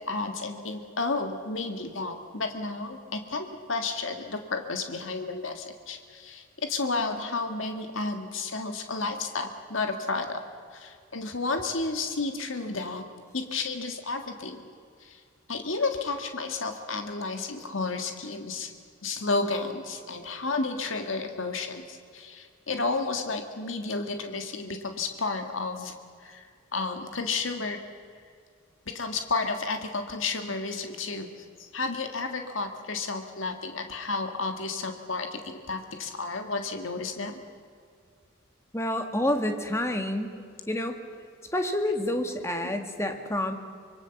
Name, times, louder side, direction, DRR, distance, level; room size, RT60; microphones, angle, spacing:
voice 1, 0.0-10.4 10.7-13.0 13.3-14.6 15.0-15.2 15.5-18.7 19.0-25.9 26.2-26.4 26.7-27.8 28.9-37.4 42.2-42.7, left 3 dB, 70° left, 5 dB, 1.8 m, -32 dB
voice 2, 38.7-40.3 40.7-41.0 41.5-43.5, left 1 dB, 15° left, 5 dB, 1.8 m, -28 dB
25.5 x 22.5 x 7.1 m, 2.2 s
head